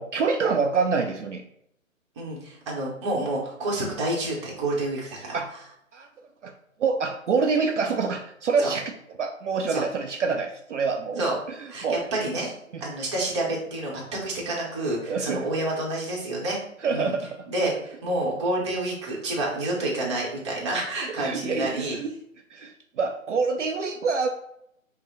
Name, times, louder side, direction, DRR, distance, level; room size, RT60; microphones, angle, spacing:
voice 1, 0.0-1.4 5.3-5.5 5.9-6.1 6.4-6.5 6.8-8.9 9.2-11.2 11.8-12.0 12.7-12.8 15.1-15.5 16.8-17.5 21.2-22.1 22.5-22.7 23.0-24.3, right 4 dB, 60° right, 3 dB, 0.5 m, -26 dB
voice 2, 2.2-5.4 8.6-8.7 9.7-9.8 11.1-11.4 11.7-12.5 12.8-16.6 16.9-17.1 17.5-22.0, right 2 dB, 20° right, -3 dB, 0.8 m, -28 dB
5.5 x 2.1 x 3.8 m, 0.74 s
figure-of-eight pair, 145°, 41 cm